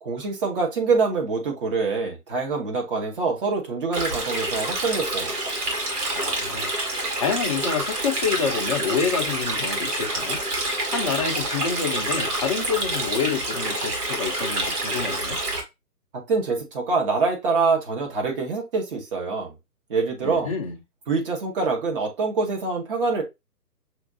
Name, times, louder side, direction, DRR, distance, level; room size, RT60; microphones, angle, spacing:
voice 1, 0.0-5.4 16.3-19.5 19.9-20.5 21.1-23.2, right 4 dB, 35° right, 1.2 m, -25 dB
Stream, 3.9-15.6, right 1 dB, 70° right, 2.0 m, -27 dB
voice 2, 6.2-6.7 7.2-10.4 10.9-15.4 20.2-20.8, left 6 dB, 20° left, 0.5 m, -27 dB
6.1 x 2.5 x 2.7 m
figure-of-eight pair, 135°, 47 cm